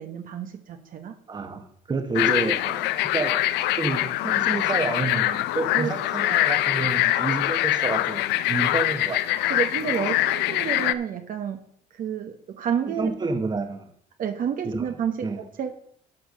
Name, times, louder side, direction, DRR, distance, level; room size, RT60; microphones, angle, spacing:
voice 1, 0.0-1.2 5.7-5.9 6.2-6.4 9.5-11.6 11.9-13.1 14.2-15.7, right 8 dB, 55° right, 1.1 m, -30 dB
voice 2, 1.3-2.9 3.1-3.4 3.8-9.2 12.9-13.9 14.6-14.9 15.2-15.4, right 3 dB, 25° right, 1.2 m, -29 dB
sound 1, 2.1-10.9, left 15 dB, 85° left, 0.5 m, -24 dB
12.0 x 4.6 x 6.4 m
cardioid pair, 110°, 17 cm